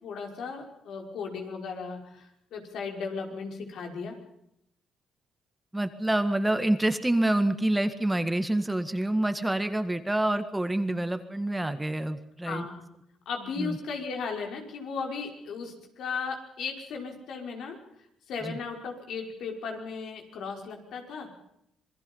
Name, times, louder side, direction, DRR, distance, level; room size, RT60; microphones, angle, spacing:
voice 1, 0.0-4.2 12.4-12.9 13.3-17.8 18.3-21.3, left 5 dB, 75° left, 2 dB, 5.5 m, -36 dB
voice 2, 5.7-12.7 13.6-13.8 18.4-18.6, right 1 dB, 10° right, 9 dB, 1.7 m, -27 dB
26.5 x 20.5 x 5.6 m, 0.77 s
cardioid pair, 90°, 0 cm